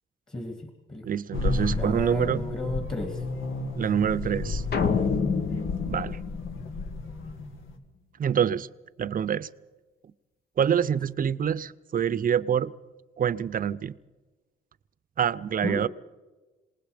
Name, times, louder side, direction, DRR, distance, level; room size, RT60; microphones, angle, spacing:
voice 1, 0.3-1.0 1.4-3.2 15.6-15.8, left 1 dB, 25° left, 2.6 m, -34 dB
voice 2, 1.0-2.4 3.7-4.6 5.9-6.2 8.2-8.7 9.0-9.5 10.6-12.7 13.2-13.9 15.2-15.9, right 8 dB, 45° right, 0.7 m, -26 dB
sound 1, 1.3-7.8, left 3 dB, 80° left, 2.3 m, -32 dB
sound 2, 4.7-7.2, left 6 dB, 55° left, 1.3 m, -29 dB
27.0 x 19.5 x 5.1 m
cardioid pair, 90°, 20 cm